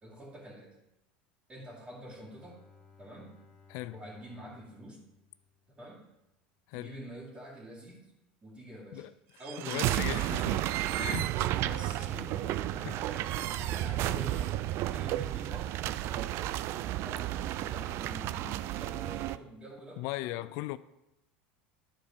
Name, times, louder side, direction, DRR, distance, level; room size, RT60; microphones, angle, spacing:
voice 1, 0.0-0.7 1.5-2.6 3.0-3.4 3.9-5.1 5.7-6.1 6.7-8.1 8.4-9.1 9.4-10.2 11.6-14.6 14.9-15.7 16.0-16.4 16.8-20.5, right 1 dB, 25° right, 2.5 m, -46 dB
Bowed string instrument, 2.0-6.5, left 5 dB, 20° left, 2.5 m, -60 dB
sound 1, 9.4-19.4, right 14 dB, 55° right, 0.3 m, -32 dB
voice 2, 9.7-10.7 11.0-11.4 12.9-13.0 13.9-14.0 20.0-20.8, left 17 dB, 65° left, 0.3 m, -37 dB
12.0 x 4.3 x 5.2 m
hypercardioid pair, 95°, 5 cm